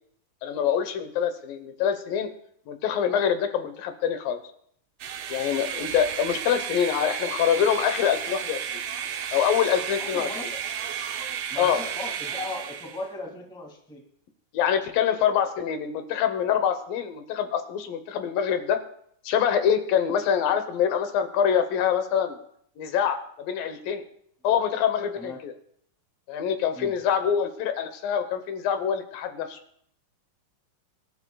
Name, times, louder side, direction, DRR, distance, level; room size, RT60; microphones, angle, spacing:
voice 1, 0.4-2.3 2.7-4.4 5.3-8.8 9.3-10.3 11.6-11.8 14.5-18.8 19.2-22.4 22.8-24.0 24.4-25.5 26.3-29.6, left 8 dB, 85° left, 8 dB, 2.8 m, -25 dB
sound 1, 5.0-13.1, right 8 dB, 70° right, 1.6 m, -33 dB
voice 2, 10.0-10.6 11.5-14.0 25.1-25.4 26.7-26.9, left 2 dB, ahead, 1 dB, 1.3 m, -37 dB
25.0 x 11.0 x 2.3 m, 0.66 s
omnidirectional pair, 3.9 m